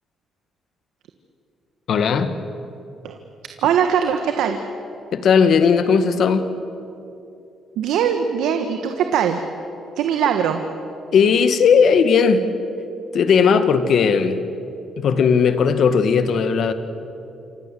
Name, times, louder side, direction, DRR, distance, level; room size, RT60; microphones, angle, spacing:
voice 1, 1.9-2.3 5.1-6.5 11.1-12.5 13.1-14.4 15.0-16.7, left 6 dB, 65° left, 10 dB, 1.9 m, -16 dB
voice 2, 3.6-4.6 7.7-9.4 10.0-10.6, right 8 dB, 85° right, 6 dB, 1.6 m, -20 dB
27.5 x 24.5 x 7.8 m, 2.8 s
cardioid pair, 90°, 0 cm